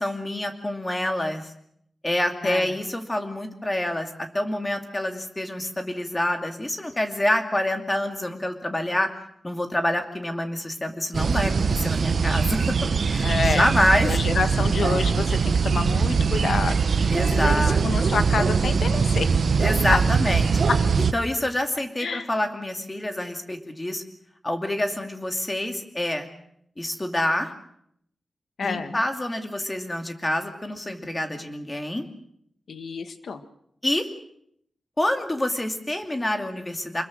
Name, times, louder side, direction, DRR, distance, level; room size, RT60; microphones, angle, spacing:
voice 1, 0.0-1.5 2.0-9.1 9.4-12.7 13.0-14.1 17.1-17.8 19.6-20.6 21.1-24.0 24.4-26.3 26.8-27.5 28.6-32.1 33.8-34.1 35.0-37.0, left 1 dB, 15° left, 5 dB, 2.5 m, -27 dB
voice 2, 2.4-2.8 13.2-13.7 14.0-19.3 19.9-20.0 20.7-20.8 22.0-22.3 28.6-29.0 32.7-33.4, left 5 dB, 75° left, 9 dB, 1.8 m, -28 dB
sound 1, 11.1-21.1, right 5 dB, 60° right, 1.0 m, -22 dB
25.5 x 22.0 x 6.4 m, 0.71 s
wide cardioid pair, 150°, 0 cm